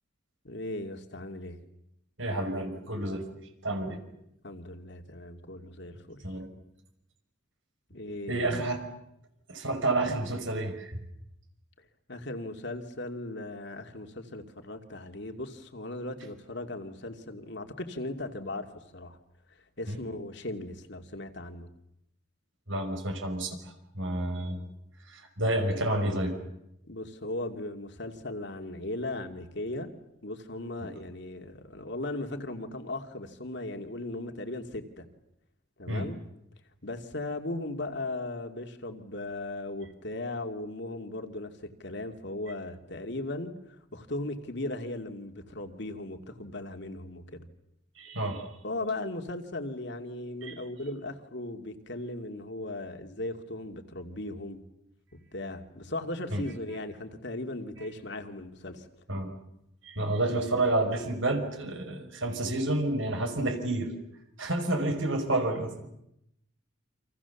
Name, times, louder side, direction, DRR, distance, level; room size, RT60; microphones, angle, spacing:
voice 1, 0.4-1.6 4.4-6.2 7.9-8.5 12.1-19.2 19.8-21.7 26.9-29.9 30.2-35.0 35.8-36.2 36.8-43.5 43.9-47.5 48.6-54.6 55.1-58.9, left 2 dB, 60° left, 5 dB, 2.5 m, -37 dB
voice 2, 2.2-3.3 3.6-4.0 6.2-6.5 8.3-8.8 9.5-11.0 19.9-20.0 22.7-23.6 23.9-24.6 25.1-26.3 35.9-36.1 48.0-48.5 50.4-50.5 56.3-56.4 59.1-59.3 59.9-63.9 64.4-65.9, right 2 dB, 75° right, 5 dB, 5.9 m, -29 dB
29.5 x 26.5 x 7.1 m, 0.81 s
head